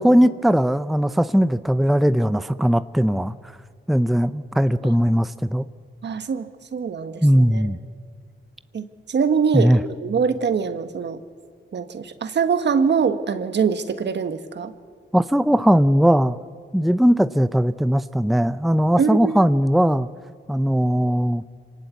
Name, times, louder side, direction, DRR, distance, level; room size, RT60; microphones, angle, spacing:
voice 1, 0.0-3.3 3.9-5.7 7.2-7.8 9.5-9.8 15.1-16.4 16.7-20.1 20.5-21.4, equal, ahead, 13 dB, 0.6 m, -19 dB
voice 2, 6.0-7.7 8.7-11.2 11.7-14.7 19.0-19.4, right 6 dB, 60° right, 10 dB, 1.4 m, -23 dB
25.5 x 19.0 x 8.3 m, 2.1 s
cardioid pair, 80°, 21 cm